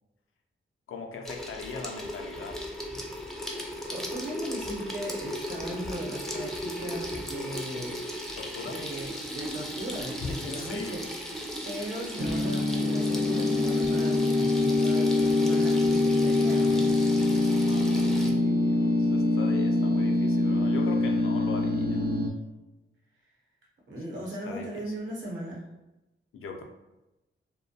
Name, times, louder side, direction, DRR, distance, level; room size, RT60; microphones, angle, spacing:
voice 1, 0.9-2.6 8.4-8.8 10.1-11.0 17.5-22.1 24.1-25.0 26.3-26.6, left 4 dB, 80° left, 3 dB, 0.4 m, -40 dB
Water tap faucet / Sink (filling or washing), 1.2-18.3, equal, ahead, 0.4 m, -37 dB
voice 2, 3.9-8.0 8.6-11.0 11.6-17.1 23.9-25.6, right 1 dB, 65° right, -3 dB, 0.9 m, -37 dB
sound 1, 12.2-22.3, left 2 dB, 45° right, 0.6 m, -24 dB
2.3 x 2.2 x 2.6 m, 0.98 s
wide cardioid pair, 85°, 21 cm